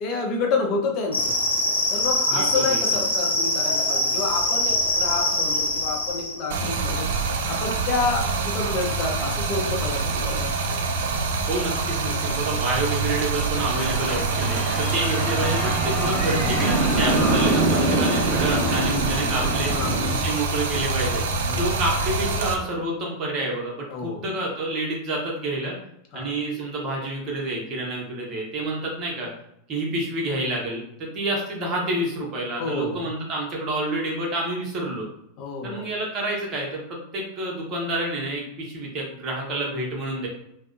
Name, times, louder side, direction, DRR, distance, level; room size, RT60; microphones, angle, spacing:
voice 1, 0.0-1.4 1.9-10.8 17.2-17.4 19.7-20.1 21.5-21.7 23.9-24.2 26.1-26.3 32.6-33.1 35.4-35.9, left 4 dB, 40° left, 1 dB, 0.6 m, -29 dB
sound 1, 1.1-6.5, left 1 dB, 80° left, 0.5 m, -23 dB
voice 2, 2.3-3.0 11.5-19.7 20.1-21.2 21.5-25.7 26.1-29.3 29.7-35.1 35.6-40.3, right 2 dB, 30° right, -2 dB, 0.8 m, -28 dB
Stream, 6.5-22.5, right 4 dB, 60° right, 0.3 m, -26 dB
sound 2, 13.5-20.1, right 1 dB, 5° left, 1.1 m, -25 dB
2.5 x 2.0 x 2.5 m, 0.76 s
figure-of-eight pair, 90°, 0 cm